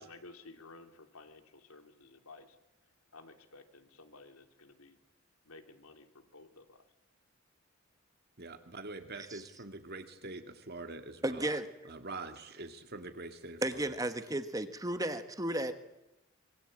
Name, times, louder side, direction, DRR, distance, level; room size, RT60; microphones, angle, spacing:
voice 1, 0.0-2.6 3.1-5.0 5.4-6.9, left 3 dB, 80° left, 6 dB, 3.0 m, -54 dB
voice 2, 8.4-11.6 11.8-13.9, right 2 dB, 45° right, 7 dB, 2.4 m, -45 dB
voice 3, 11.2-11.7 13.6-15.7, right 1 dB, 15° right, 10 dB, 1.3 m, -34 dB
25.5 x 23.5 x 8.8 m, 0.92 s
head